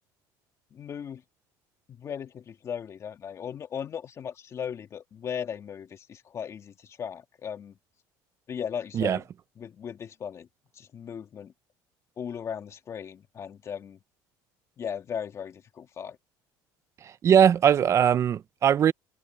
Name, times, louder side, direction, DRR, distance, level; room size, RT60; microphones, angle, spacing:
voice 1, 0.7-1.2 2.0-7.8 8.5-9.2 9.6-10.5 10.8-11.5 12.2-14.0 14.8-16.2, left 8 dB, 35° left, 2.3 m, -37 dB
voice 2, 17.0-18.9, right 8 dB, 35° right, 0.6 m, -20 dB
cardioid pair, 135°, 9 cm